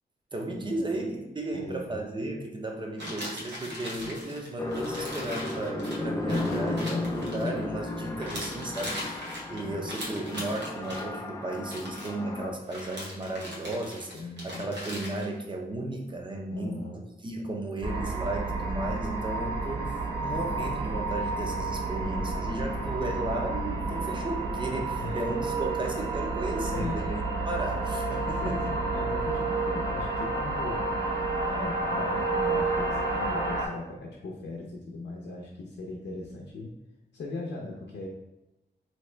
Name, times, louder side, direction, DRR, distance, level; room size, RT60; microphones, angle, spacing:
voice 1, 0.3-9.2 9.5-16.8 17.2-28.8, right 2 dB, 25° right, 1 dB, 0.6 m, -34 dB
voice 2, 1.5-1.9 9.5-9.8 14.1-14.7 16.5-17.0 25.0-25.2 26.7-27.0 28.4-30.8 31.4-36.7 37.1-38.1, left 2 dB, 90° left, -1 dB, 0.6 m, -38 dB
sound 1, 3.0-7.9 8.2-11.1 11.6-12.1 12.7-15.3, equal, 85° right, 0.9 m, -39 dB
sound 2, 4.6-12.5, left 2 dB, 20° left, 0.4 m, -34 dB
sound 3, 17.8-33.7, right 3 dB, 70° right, 1.3 m, -30 dB
3.2 x 2.8 x 3.2 m, 0.98 s
wide cardioid pair, 115°, 17 cm